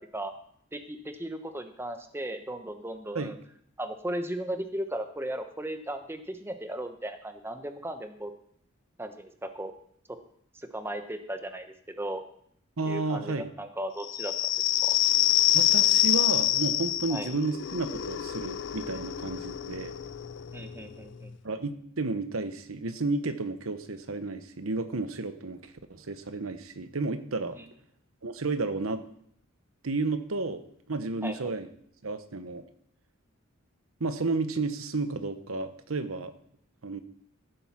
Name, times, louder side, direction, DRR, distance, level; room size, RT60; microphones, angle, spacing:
voice 1, 0.7-3.4 3.8-8.3 9.0-9.7 10.7-12.2 12.9-14.3 14.8-15.0 17.1-17.3 20.5-21.3 27.6-27.7 31.2-31.6, right 1 dB, 10° right, 7 dB, 1.0 m, -36 dB
voice 2, 12.8-13.5 15.5-19.9 21.4-27.6 28.2-29.0 29.8-31.7 32.0-32.6 34.0-36.3 36.8-37.0, right 3 dB, 85° right, 10 dB, 1.0 m, -32 dB
sound 1, 14.0-21.3, left 13 dB, 60° left, 0.5 m, -26 dB
14.5 x 7.9 x 5.9 m, 0.67 s
head